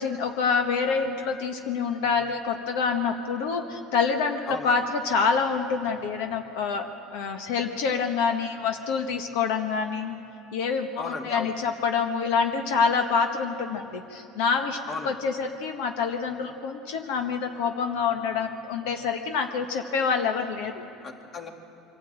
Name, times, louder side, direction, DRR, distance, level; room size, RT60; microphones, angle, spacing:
voice 1, 0.0-10.2 10.5-14.8 15.0-20.8, left 5 dB, 80° left, 5 dB, 1.3 m, -26 dB
voice 2, 4.5-4.8 11.0-11.5 14.9-15.1 21.0-21.5, left 4 dB, 35° left, 3 dB, 2.3 m, -35 dB
24.5 x 12.5 x 8.9 m, 2.7 s
supercardioid pair, 110°, 0 cm